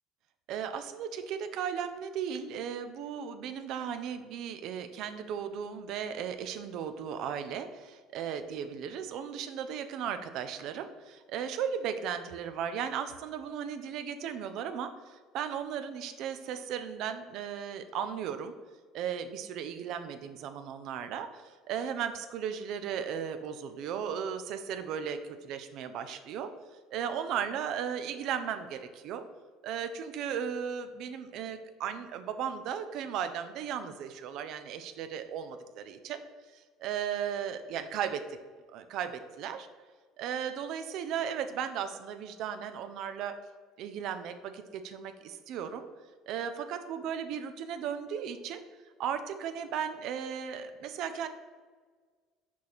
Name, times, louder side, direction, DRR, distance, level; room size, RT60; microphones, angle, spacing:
voice 1, 0.5-18.5 18.9-26.5 26.9-29.2 29.6-36.3 36.5-38.2 38.7-39.7 40.2-43.4 43.8-45.9 46.3-48.6 49.0-51.3, right 8 dB, 65° right, 9 dB, 0.5 m, -36 dB
6.1 x 4.3 x 4.0 m, 1.5 s
hypercardioid pair, 80°, 0 cm